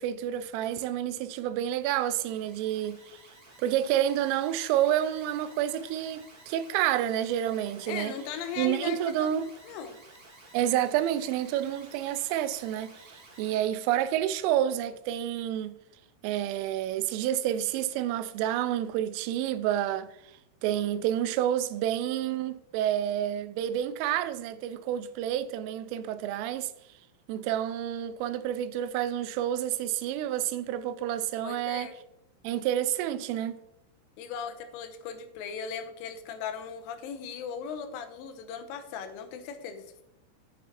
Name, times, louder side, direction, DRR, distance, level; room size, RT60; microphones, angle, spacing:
voice 1, 0.0-3.0 3.6-8.2 8.6-9.5 10.5-15.7 16.2-20.1 20.6-26.7 27.3-31.9 32.4-33.6, right 11 dB, 90° right, 3.1 m, -29 dB
Alarm, 1.4-13.7, right 2 dB, 50° right, 1.4 m, -54 dB
voice 2, 7.9-9.3 9.6-10.0 31.4-32.0 34.2-40.0, left 7 dB, 85° left, 3.4 m, -38 dB
8.6 x 8.4 x 2.9 m
omnidirectional pair, 5.6 m